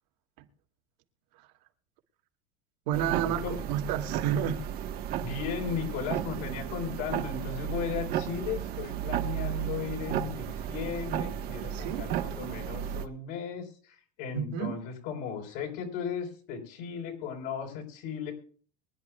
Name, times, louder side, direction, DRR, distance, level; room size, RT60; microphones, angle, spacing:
sound 1, 2.9-13.1, right 10 dB, 45° right, 1.3 m, -34 dB
voice 1, 2.9-4.6 11.7-12.1 14.3-14.8, right 9 dB, 80° right, 2.5 m, -31 dB
voice 2, 5.2-18.3, left 7 dB, 60° left, 4.4 m, -36 dB
24.0 x 11.0 x 2.4 m
cardioid pair, 160°, 21 cm